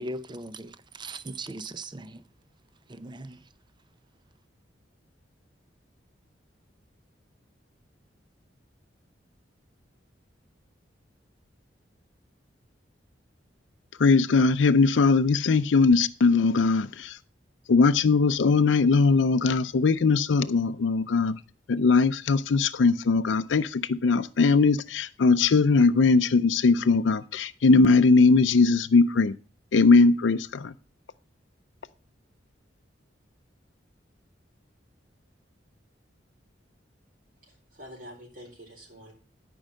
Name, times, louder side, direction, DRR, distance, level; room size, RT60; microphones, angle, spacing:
voice 1, 0.0-2.2 2.9-3.4, right 2 dB, 25° right, 0.5 m, -38 dB
voice 2, 14.0-17.2 17.7-21.4 21.7-29.3 29.7-30.7, left 4 dB, 75° left, 0.5 m, -20 dB
voice 3, 37.5-39.1, equal, 50° right, 4.3 m, -46 dB
12.5 x 5.4 x 6.4 m
head